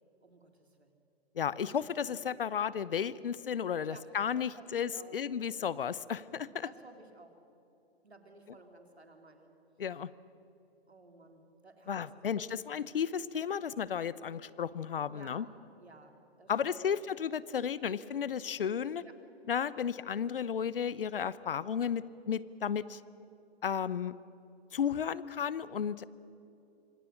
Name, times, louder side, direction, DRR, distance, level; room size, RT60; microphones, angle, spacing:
voice 1, 0.2-1.0 3.8-4.0 4.3-5.1 6.5-7.3 8.0-9.5 10.9-12.1 12.3-12.6 15.1-16.8 19.0-19.1, right 2 dB, 85° right, 4 dB, 3.2 m, -55 dB
voice 2, 1.4-6.7 9.8-10.1 11.9-15.5 16.5-19.0 19.5-23.0 23.6-24.1 24.7-26.0, left 7 dB, 60° left, 19 dB, 0.9 m, -33 dB
26.0 x 26.0 x 6.5 m, 2.8 s
figure-of-eight pair, 125°, 31 cm